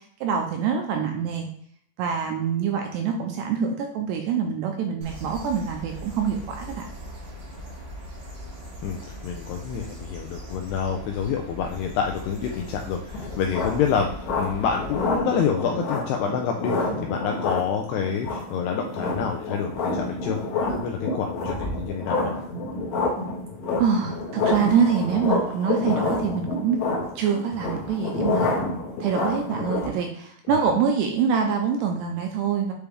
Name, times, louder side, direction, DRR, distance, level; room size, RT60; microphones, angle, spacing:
voice 1, 0.2-1.5 2.0-6.9 23.8-26.8 27.2-28.5 29.0-32.7, right 6 dB, 85° right, 3 dB, 2.6 m, -25 dB
sound 1, 5.0-15.2, equal, 65° right, 1.6 m, -40 dB
voice 2, 8.8-22.3 30.5-30.7, left 7 dB, 85° left, 2 dB, 2.4 m, -28 dB
sound 2, 13.1-29.9, left 3 dB, 70° left, 1.7 m, -28 dB
8.4 x 3.4 x 3.4 m, 0.64 s
omnidirectional pair, 5.3 m